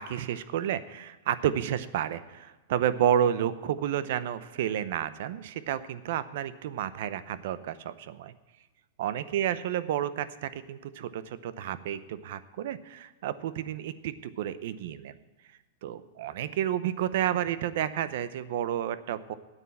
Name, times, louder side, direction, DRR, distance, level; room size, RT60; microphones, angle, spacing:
voice 1, 0.0-8.3 9.0-15.1 15.8-19.3, right 10 dB, 55° right, 15 dB, 0.7 m, -31 dB
9.5 x 8.2 x 8.4 m, 1.2 s
supercardioid pair, 165°, 0 cm